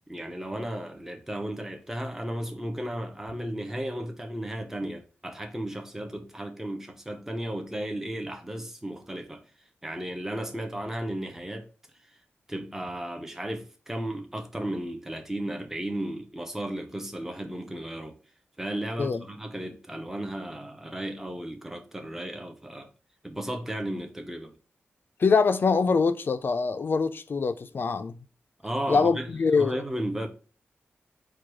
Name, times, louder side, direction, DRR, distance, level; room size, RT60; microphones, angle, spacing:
voice 1, 0.1-9.4 9.8-11.7 12.5-18.2 18.6-22.9 23.2-24.5 28.6-29.3 29.5-30.3, right 1 dB, 10° right, 0.7 m, -34 dB
voice 2, 25.2-28.1 28.9-29.8, left 4 dB, 50° left, 0.4 m, -24 dB
4.6 x 2.3 x 4.6 m
wide cardioid pair, 120°, 5 cm